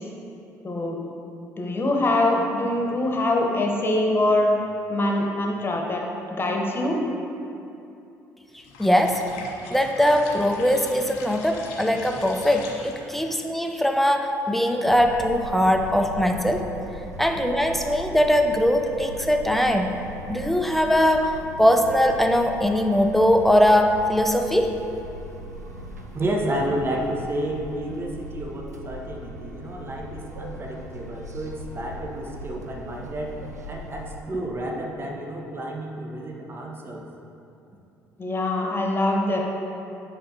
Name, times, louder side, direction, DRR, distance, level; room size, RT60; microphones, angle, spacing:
voice 1, 0.6-1.0 1.6-4.5 4.9-6.0 6.4-7.0 38.2-39.4, left 1 dB, 25° left, 0 dB, 1.1 m, -23 dB
sound 1, 8.6-13.2, left 4 dB, 70° left, 0.7 m, -41 dB
voice 2, 8.8-9.2 9.7-16.7 17.2-19.9 20.3-24.8, equal, ahead, 5 dB, 0.6 m, -21 dB
sound 2, 14.8-34.2, equal, 90° right, 0.4 m, -39 dB
voice 3, 26.1-33.4 33.7-37.1, right 1 dB, 25° right, 0 dB, 0.9 m, -31 dB
9.9 x 5.1 x 2.8 m, 2.8 s
figure-of-eight pair, 50°, 9 cm